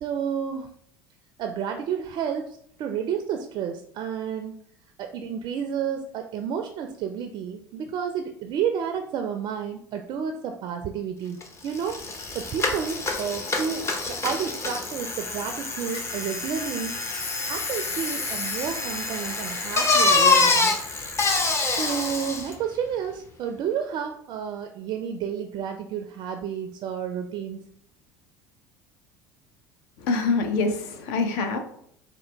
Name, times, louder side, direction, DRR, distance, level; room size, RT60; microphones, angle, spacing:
voice 1, 0.0-0.7 1.4-4.6 5.0-16.9 17.5-20.8 21.7-27.6, right 7 dB, 45° right, 6 dB, 0.4 m, -31 dB
Bicycle, 11.4-11.5 11.7-22.5, left 3 dB, 30° left, 0.7 m, -26 dB
sound 1, 15.8-20.4, left 3 dB, 45° left, 1.5 m, -35 dB
voice 2, 30.0-31.6, left 4 dB, 65° left, 6 dB, 0.6 m, -25 dB
4.2 x 2.1 x 3.0 m, 0.68 s
hypercardioid pair, 70°, 10 cm